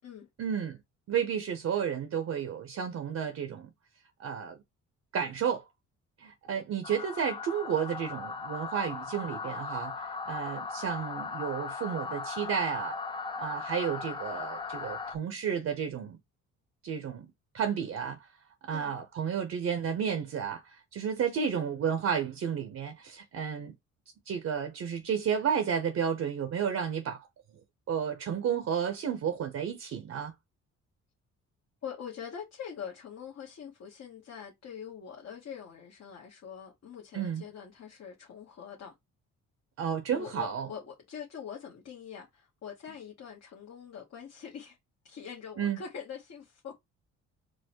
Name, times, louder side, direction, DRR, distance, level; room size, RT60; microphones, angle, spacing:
voice 1, 0.4-0.8 1.1-3.7 4.2-4.6 5.1-5.6 6.2-9.9 10.2-12.9 13.4-16.2 16.8-17.3 17.5-18.2 18.6-23.7 24.3-27.3 27.9-30.3 37.1-37.4 39.8-40.7 45.6-45.8, right 7 dB, 55° right, 0.7 m, -32 dB
sound 1, 6.8-15.2, left 4 dB, 15° left, 0.5 m, -38 dB
voice 2, 31.8-38.9 40.1-44.8 45.0-46.7, left 7 dB, 55° left, 1.2 m, -44 dB
4.6 x 2.1 x 4.4 m
cardioid pair, 90°, 30 cm